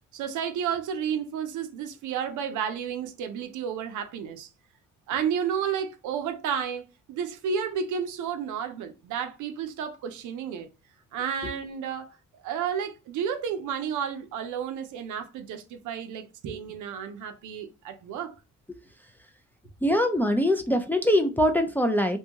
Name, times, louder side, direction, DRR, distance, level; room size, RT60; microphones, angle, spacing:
voice 1, 0.1-4.5 5.1-6.8 7.1-10.7 11.1-12.1 12.4-18.3, right 7 dB, 80° right, 0.6 m, -31 dB
voice 2, 19.8-22.2, left 1 dB, 5° left, 0.3 m, -23 dB
2.6 x 2.3 x 2.8 m
cardioid pair, 90°, 30 cm